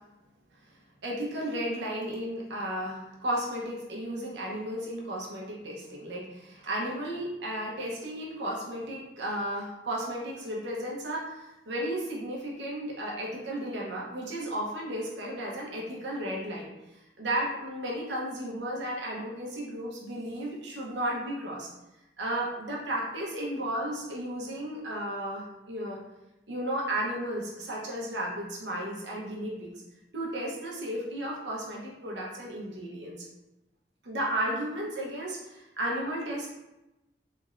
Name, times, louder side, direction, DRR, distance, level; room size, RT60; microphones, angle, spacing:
voice 1, 1.0-16.7 17.2-21.7 22.2-26.0 26.5-29.7 30.1-33.3 34.0-36.5, right 1 dB, 80° right, -3 dB, 0.9 m, -34 dB
3.4 x 3.1 x 2.5 m, 0.96 s
head